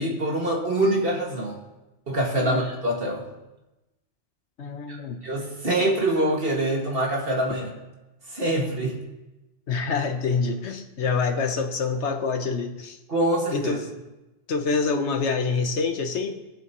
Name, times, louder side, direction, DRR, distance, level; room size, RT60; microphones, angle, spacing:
voice 1, 0.0-1.6 2.1-3.3 4.9-5.0 5.2-7.7 8.3-9.0 13.1-13.8, right 1 dB, 55° right, -1 dB, 2.2 m, -25 dB
voice 2, 4.6-5.2 9.7-13.0 13.5-13.9 14.5-16.4, left 4 dB, 80° left, 6 dB, 1.3 m, -26 dB
20.5 x 7.7 x 3.0 m, 1.0 s
omnidirectional pair, 1.2 m